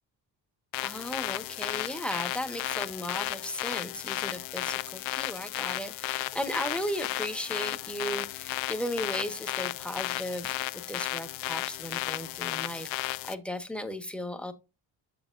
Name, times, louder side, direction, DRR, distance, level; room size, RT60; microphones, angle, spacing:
sound 1, 0.7-13.3, left 18 dB, 85° left, 0.6 m, -34 dB
voice 1, 0.8-14.5, equal, ahead, 7 dB, 1.6 m, -36 dB
7.3 x 7.1 x 2.7 m, 0.28 s
supercardioid pair, 60°, 45 cm